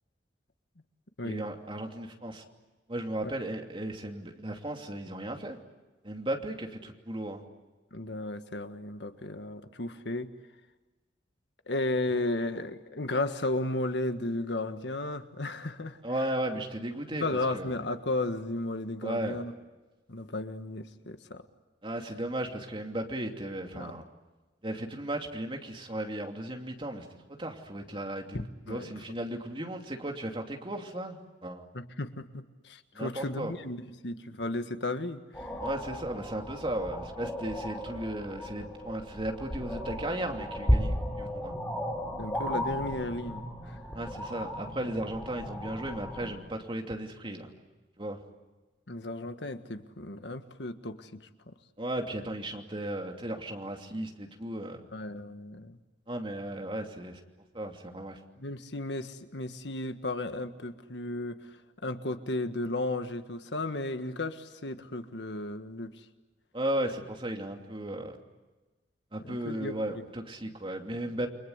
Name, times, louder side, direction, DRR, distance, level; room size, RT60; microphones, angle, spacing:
voice 1, 1.2-2.4 2.9-5.6 6.0-7.4 16.0-17.7 19.0-19.4 21.8-24.0 24.6-31.7 32.9-33.5 35.6-41.5 43.9-47.5 48.0-48.2 51.8-54.8 56.1-57.2 57.5-58.2 66.5-68.2 69.1-71.3, right 1 dB, 30° right, 2 dB, 2.9 m, -35 dB
voice 2, 7.9-10.3 11.7-16.0 17.1-19.5 20.1-21.4 23.7-23.9 28.3-28.9 31.7-35.5 42.2-43.8 48.9-51.5 54.9-55.8 58.4-66.0 69.2-70.0, left 2 dB, 75° left, 8 dB, 1.6 m, -34 dB
sound 1, 35.3-46.3, equal, 15° left, 5.1 m, -34 dB
29.5 x 24.0 x 8.2 m, 1.2 s
head